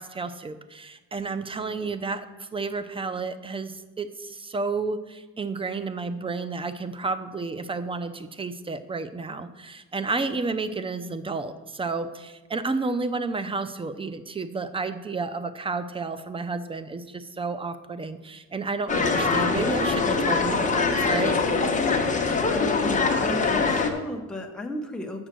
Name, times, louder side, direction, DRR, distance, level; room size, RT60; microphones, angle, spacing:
voice 1, 0.0-21.4, right 3 dB, 15° right, 12 dB, 0.5 m, -31 dB
sound 1, 18.9-23.9, left 4 dB, 20° left, 1.0 m, -23 dB
voice 2, 22.5-25.3, left 1 dB, ahead, 1 dB, 0.9 m, -35 dB
7.1 x 6.3 x 6.7 m, 1.2 s
cardioid pair, 105°, 36 cm